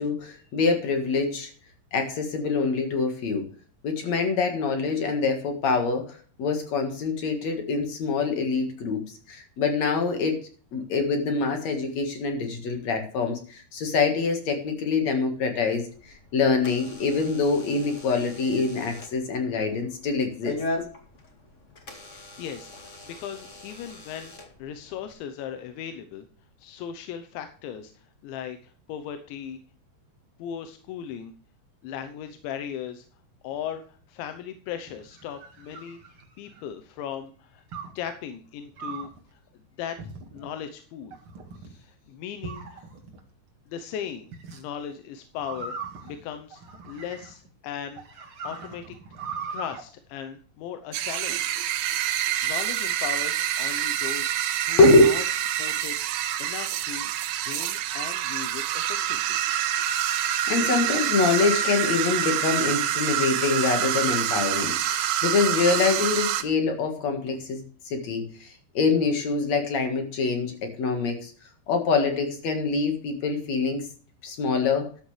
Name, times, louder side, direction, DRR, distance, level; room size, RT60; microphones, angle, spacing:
voice 1, 0.0-1.5 1.9-3.5 3.8-10.4 10.7-20.6 54.8-55.2 60.2-71.3 71.7-73.9 74.2-74.9, left 4 dB, 50° left, 5 dB, 2.3 m, -25 dB
Door / Alarm, 15.9-25.1, left 1 dB, 70° left, 0.7 m, -40 dB
voice 2, 22.1-26.3 26.6-29.6 30.4-31.3 31.8-33.1 33.4-36.0 36.4-37.7 38.0-39.4 39.8-40.0 40.3-41.1 41.8-42.8 43.7-45.7 46.0-49.0 49.5-51.6 52.0-54.4 54.7-55.2 55.6-56.0 56.4-57.1 57.4-59.4, left 9 dB, 90° left, 8 dB, 3.3 m, -38 dB
sound 1, 34.9-36.7 37.7-38.1 38.8-39.2 40.0-40.5 41.1-41.7 42.4-43.2 44.3-44.6 45.4-47.5 48.0-49.8, right 5 dB, 40° right, 2.0 m, -39 dB
sound 2, 50.9-66.4, right 11 dB, 80° right, 3.2 m, -27 dB
13.0 x 11.5 x 3.3 m, 0.42 s
omnidirectional pair, 5.1 m